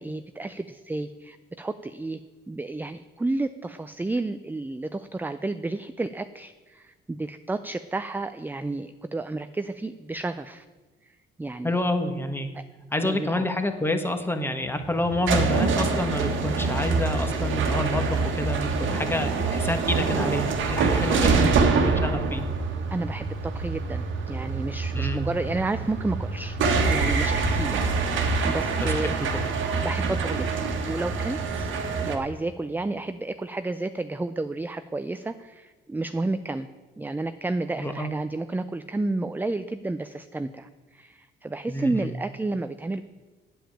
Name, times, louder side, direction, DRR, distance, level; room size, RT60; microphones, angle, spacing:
voice 1, 0.0-2.2 2.5-10.6 11.4-11.8 12.5-12.6 13.0-13.4 21.3-21.6 22.9-26.6 26.8-27.8 28.2-29.1 29.8-31.7 32.1-36.7 37.0-43.0, right 2 dB, 10° right, 11 dB, 0.4 m, -31 dB
voice 2, 11.6-12.5 12.9-22.4 24.9-25.2 28.8-29.4 37.8-38.1 41.7-42.1, left 1 dB, 10° left, 6 dB, 1.4 m, -28 dB
sound 1, 14.7-32.2, right 4 dB, 75° right, 1.5 m, -25 dB
8.9 x 7.2 x 8.7 m, 1.2 s
cardioid pair, 90°, 20 cm